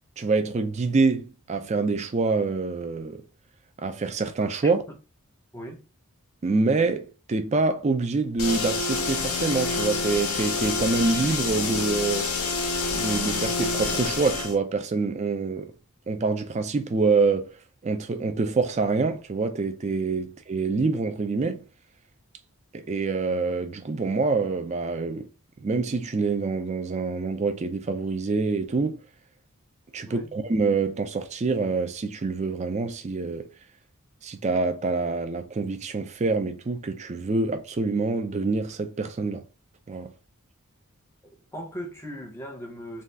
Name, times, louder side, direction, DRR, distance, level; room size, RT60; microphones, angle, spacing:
voice 1, 0.2-3.2 3.8-4.8 6.4-12.5 12.9-15.7 16.1-21.6 22.7-25.3 25.6-29.0 29.9-33.5 34.2-39.4 39.9-40.1, right 3 dB, 30° right, 0.4 m, -26 dB
voice 2, 5.5-5.8 30.0-30.3 41.5-43.0, equal, 10° left, 0.6 m, -38 dB
sound 1, 8.4-14.6, left 4 dB, 75° left, 0.7 m, -27 dB
2.7 x 2.3 x 3.3 m
head